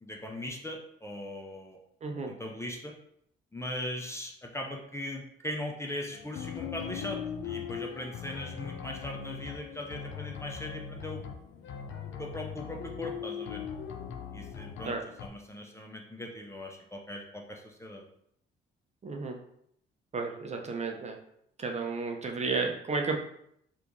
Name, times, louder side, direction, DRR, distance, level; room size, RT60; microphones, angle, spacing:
voice 1, 0.0-1.8 2.3-2.9 3.5-11.2 12.2-13.6 14.3-14.9 15.2-18.0, left 1 dB, 15° left, 1 dB, 0.5 m, -39 dB
voice 2, 2.0-2.3 14.8-15.0 19.0-19.4 20.1-21.2 21.6-23.2, right 4 dB, 35° right, 3 dB, 0.5 m, -32 dB
sound 1, 6.1-15.3, left 8 dB, 70° left, 0.4 m, -40 dB
3.0 x 2.4 x 3.5 m, 0.71 s
cardioid pair, 90°, 20 cm